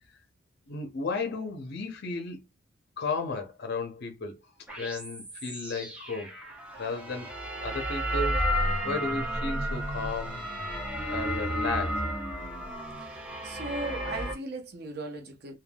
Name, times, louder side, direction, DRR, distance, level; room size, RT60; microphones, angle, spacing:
voice 1, 0.7-2.4 3.0-4.4 4.8-6.3 6.8-7.3 7.6-8.5 8.8-10.4 11.1-12.1, left 3 dB, 50° left, 0.6 m, -34 dB
sound 1, 4.7-14.3, equal, 5° right, 0.8 m, -32 dB
voice 2, 13.1-15.5, right 2 dB, 50° right, 0.7 m, -38 dB
3.4 x 2.2 x 2.2 m
head